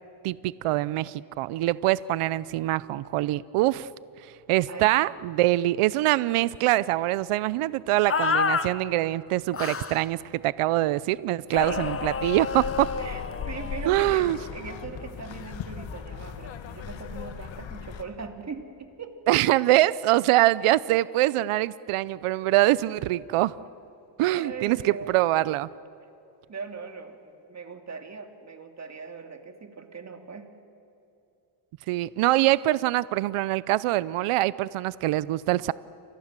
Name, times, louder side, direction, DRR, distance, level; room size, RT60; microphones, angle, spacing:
voice 1, 0.2-3.9 4.5-12.9 13.9-14.4 19.3-23.5 24.2-25.7 31.9-35.7, right 16 dB, 85° right, 18 dB, 0.7 m, -24 dB
voice 2, 4.7-5.2 11.3-11.9 13.0-19.2 24.3-25.1 26.5-30.5, right 5 dB, 30° right, 5 dB, 2.7 m, -40 dB
sound 1, 8.1-8.7 9.5-10.0 11.5-13.9, left 5 dB, 25° left, 1.1 m, -29 dB
sound 2, 11.5-18.0, left 7 dB, 65° left, 2.1 m, -38 dB
29.0 x 26.5 x 7.5 m, 2.7 s
cardioid pair, 115°, 50 cm